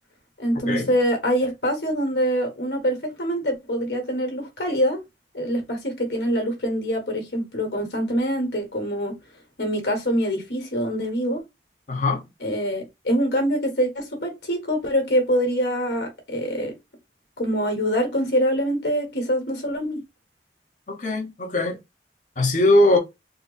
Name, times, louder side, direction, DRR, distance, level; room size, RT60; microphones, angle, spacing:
voice 1, 0.4-5.0 5.3-9.1 9.6-11.4 12.4-16.7 17.4-20.0, equal, 75° left, 1.5 m, -24 dB
voice 2, 11.9-12.2 20.9-21.8 22.4-23.0, left 1 dB, 45° left, 1.0 m, -20 dB
4.0 x 2.0 x 3.9 m
head